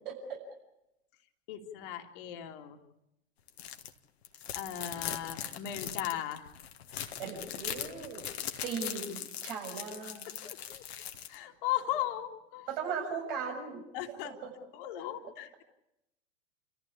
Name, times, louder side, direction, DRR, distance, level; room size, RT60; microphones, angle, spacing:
voice 1, 0.1-0.4 7.2-8.4 8.6-10.3 12.7-13.8 14.2-14.5, right 5 dB, 50° right, 3 dB, 6.9 m, -38 dB
voice 2, 1.5-2.8 4.5-6.5 10.4-10.8 11.3-12.7 13.9-14.4 14.7-15.6, left 12 dB, 50° left, 6 dB, 2.6 m, -37 dB
sound 1, 3.5-3.9 4.2-11.3, left 9 dB, 65° left, 1.8 m, -40 dB
29.5 x 14.5 x 8.4 m, 0.85 s
figure-of-eight pair, 100°, 34 cm